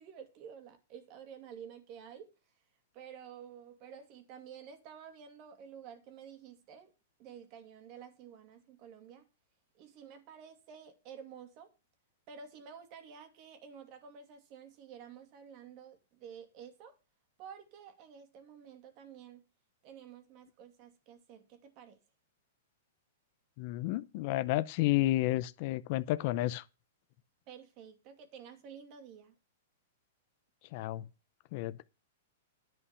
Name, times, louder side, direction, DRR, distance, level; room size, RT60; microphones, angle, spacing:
voice 1, 0.0-2.3 2.9-6.9 7.2-9.3 9.7-11.7 12.3-17.0 17.4-19.4 19.8-22.0 27.5-29.3, right 7 dB, 40° right, 2.4 m, -51 dB
voice 2, 23.6-26.6 30.7-31.1 31.5-31.8, left 16 dB, 50° left, 0.6 m, -31 dB
10.5 x 5.6 x 7.1 m
hypercardioid pair, 135°, 0 cm